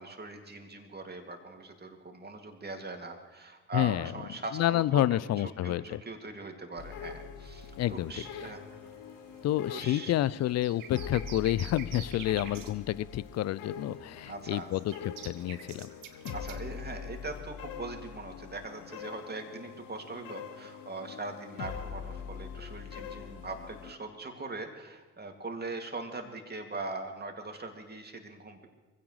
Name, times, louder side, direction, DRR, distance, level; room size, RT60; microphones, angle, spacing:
voice 1, 0.0-8.6 9.7-10.1 12.5-12.7 14.3-14.7 16.3-28.7, right 3 dB, 25° right, 4 dB, 2.6 m, -41 dB
voice 2, 3.7-4.1 4.5-6.0 7.8-8.5 9.4-15.9, left 13 dB, 45° left, 19 dB, 0.5 m, -29 dB
sound 1, 6.8-23.9, left 8 dB, 60° left, 1.1 m, -43 dB
sound 2, 7.4-17.4, right 8 dB, 60° right, 1.3 m, -50 dB
24.5 x 16.0 x 3.3 m, 1.2 s
figure-of-eight pair, 40°, 38 cm